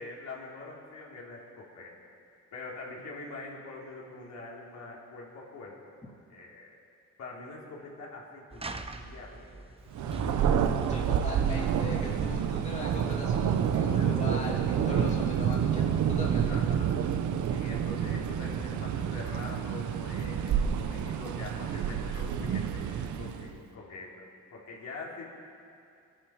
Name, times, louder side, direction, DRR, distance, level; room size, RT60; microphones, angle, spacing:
voice 1, 0.0-1.9 2.5-5.8 6.0-6.8 7.2-9.6 10.3-10.5 16.5-17.0 17.5-24.3 24.5-25.3, left 3 dB, 65° left, -4 dB, 3.7 m, -44 dB
sound 1, 8.5-14.3, right 3 dB, 20° right, 0.9 m, -42 dB
Thunder, 9.9-23.6, right 8 dB, 75° right, 1.0 m, -28 dB
voice 2, 10.9-16.6, left 2 dB, 25° left, -3 dB, 3.0 m, -39 dB
22.5 x 11.5 x 4.9 m, 2.5 s
cardioid pair, 90°, 30 cm